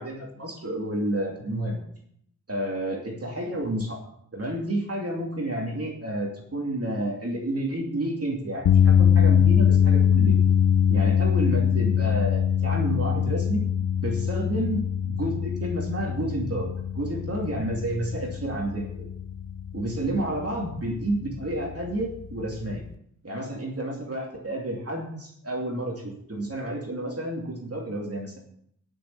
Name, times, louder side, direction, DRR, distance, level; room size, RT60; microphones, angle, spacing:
voice 1, 0.0-1.8 2.5-4.0 4.3-10.4 10.9-13.7 14.0-19.1 19.7-22.8 23.2-28.4, right 1 dB, 45° right, -1 dB, 2.5 m, -30 dB
sound 1, 8.6-22.9, left 8 dB, 85° left, 0.5 m, -23 dB
11.0 x 6.6 x 7.0 m, 0.68 s
wide cardioid pair, 95°, 33 cm